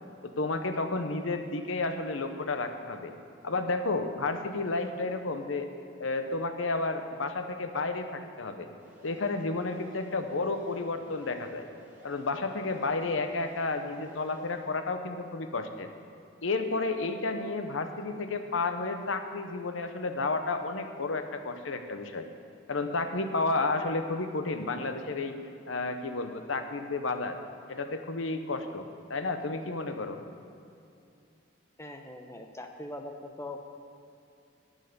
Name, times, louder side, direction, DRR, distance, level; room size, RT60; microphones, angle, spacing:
voice 1, 0.2-3.1 3.4-5.7 6.0-8.7 9.0-11.6 12.0-15.9 16.4-22.3 22.7-25.4 25.7-27.4 27.7-30.2, left 3 dB, 85° left, 7 dB, 0.9 m, -31 dB
sound 1, 8.8-14.6, right 1 dB, 10° right, 2.4 m, -54 dB
voice 2, 31.8-33.6, left 1 dB, 15° left, 4 dB, 0.8 m, -41 dB
10.5 x 9.2 x 6.7 m, 2.6 s
head